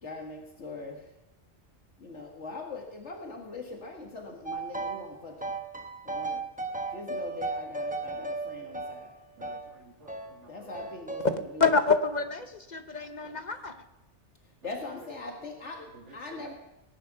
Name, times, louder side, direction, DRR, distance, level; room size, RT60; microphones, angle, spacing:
voice 1, 0.0-1.1 2.0-5.5 6.0-6.4 6.9-9.2 10.5-11.7 14.6-16.5, left 3 dB, 75° left, 1 dB, 2.1 m, -41 dB
sound 1, 4.5-5.1 5.4-9.7 10.1-10.3 10.7-11.3, right 3 dB, 5° right, 1.1 m, -35 dB
voice 2, 9.4-10.7 15.8-16.4, right 1 dB, 85° right, 2 dB, 2.3 m, -52 dB
voice 3, 11.3-13.8, left 4 dB, 40° left, 8 dB, 1.0 m, -27 dB
18.5 x 10.5 x 6.1 m, 0.92 s
omnidirectional pair, 1.2 m